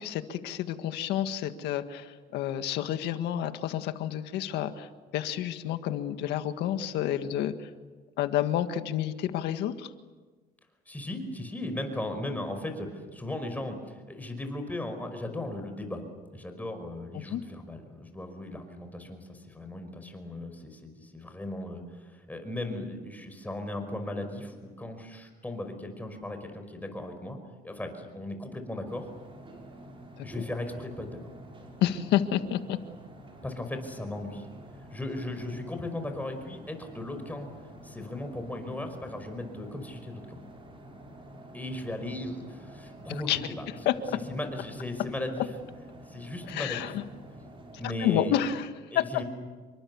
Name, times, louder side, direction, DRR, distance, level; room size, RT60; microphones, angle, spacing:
voice 1, 0.0-7.7 8.2-9.9 17.3-17.4 30.2-30.3 31.8-32.8 43.1-43.4 43.9-44.0 46.5-47.0 48.0-48.7, left 11 dB, 85° left, 9 dB, 1.8 m, -29 dB
voice 2, 10.9-16.0 16.3-27.4 27.6-29.1 30.2-31.2 33.4-34.5 34.9-37.5 37.8-40.4 41.5-43.7 44.3-45.5 46.1-46.9 47.8-48.4 48.9-49.2, left 1 dB, 10° left, 6 dB, 5.3 m, -37 dB
sound 1, 28.8-48.6, right 1 dB, 30° right, 6.6 m, -48 dB
28.5 x 24.0 x 7.2 m, 1.3 s
cardioid pair, 110°, 17 cm